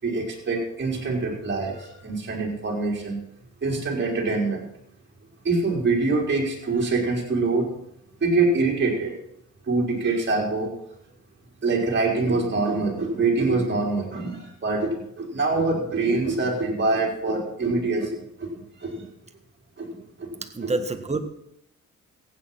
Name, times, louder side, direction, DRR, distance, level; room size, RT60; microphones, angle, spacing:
voice 1, 0.0-3.2 3.6-4.7 5.4-7.7 8.2-9.1 9.6-10.7 11.6-19.1 19.8-20.7, right 3 dB, 40° right, 0 dB, 4.7 m, -25 dB
voice 2, 20.4-21.2, right 3 dB, 20° right, 7 dB, 1.6 m, -27 dB
15.0 x 9.3 x 6.0 m, 0.75 s
cardioid pair, 90°, 30 cm